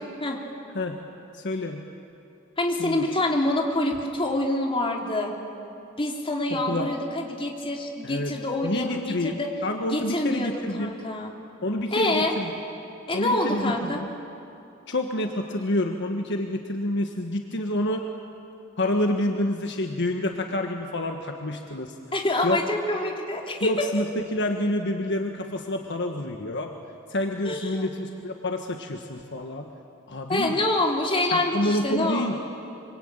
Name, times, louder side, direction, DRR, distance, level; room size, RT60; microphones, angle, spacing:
voice 1, 1.3-1.8 2.8-3.1 6.5-6.9 8.0-8.3 8.6-10.9 11.6-12.5 13.1-14.0 14.9-18.0 18.8-21.9 22.4-22.6 23.6-26.7 27.1-29.7 30.1-30.6 31.3-32.3, left 1 dB, 60° left, 4 dB, 1.5 m, -28 dB
voice 2, 2.6-5.3 6.0-9.5 9.9-11.3 11.9-12.4 13.1-14.0 22.1-23.7 27.4-27.9 30.3-32.4, left 1 dB, 25° left, 0 dB, 3.2 m, -26 dB
25.5 x 25.0 x 9.0 m, 2.7 s
head